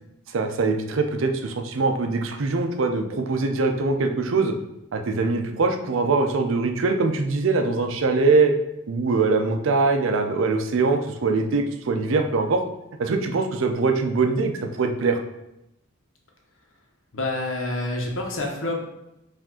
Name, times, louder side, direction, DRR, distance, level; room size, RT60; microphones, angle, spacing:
voice 1, 0.3-4.5 4.9-8.5 8.9-12.6 13.0-15.2, right 3 dB, 75° right, 5 dB, 0.5 m, -22 dB
voice 2, 17.1-18.8, left 2 dB, 80° left, 0 dB, 0.9 m, -27 dB
4.8 x 2.5 x 3.7 m, 0.90 s
head